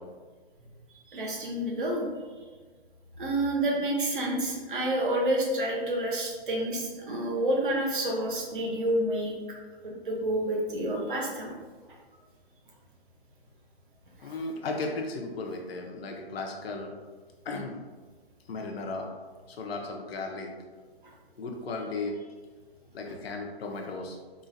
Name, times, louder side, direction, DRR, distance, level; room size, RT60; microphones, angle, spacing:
voice 1, 1.1-2.1 3.2-9.3 9.8-11.5 14.2-14.3, right 1 dB, 55° right, -1 dB, 0.9 m, -29 dB
voice 2, 14.2-16.9 17.4-17.7 18.5-19.1 19.5-20.5 21.4-22.2 22.9-24.2, left 3 dB, 70° left, 1 dB, 0.6 m, -35 dB
3.8 x 2.4 x 2.6 m, 1.4 s
hypercardioid pair, 165°, 32 cm